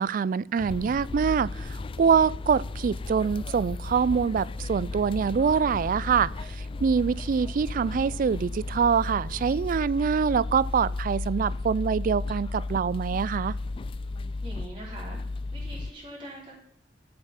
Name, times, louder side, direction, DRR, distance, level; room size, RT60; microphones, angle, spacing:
voice 1, 0.0-1.7 2.0-6.3 6.8-13.5, right 6 dB, 50° right, 22 dB, 0.3 m, -25 dB
sound 1, 0.6-15.9, left 2 dB, 30° left, 0.3 m, -34 dB
voice 2, 14.4-15.2 15.5-16.5, right 1 dB, 30° right, -4 dB, 3.1 m, -42 dB
12.0 x 6.9 x 5.7 m, 0.67 s
head